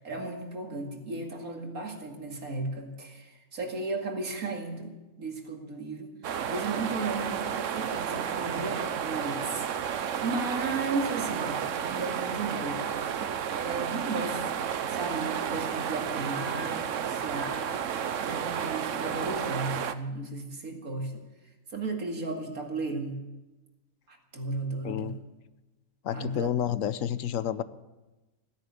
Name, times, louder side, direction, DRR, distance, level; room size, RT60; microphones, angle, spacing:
voice 1, 0.0-6.1 6.5-9.7 10.2-12.8 13.1-13.3 13.5-14.5 14.9-17.8 18.2-21.2 21.7-23.2 24.1-25.2 26.1-26.5, right 3 dB, 90° right, 2 dB, 2.6 m, -35 dB
sound 1, 6.2-19.9, right 8 dB, 65° right, 1.1 m, -32 dB
voice 2, 24.8-25.2 26.0-27.6, left 10 dB, 70° left, 15 dB, 1.0 m, -30 dB
16.0 x 10.5 x 8.3 m, 1.1 s
omnidirectional pair, 1.5 m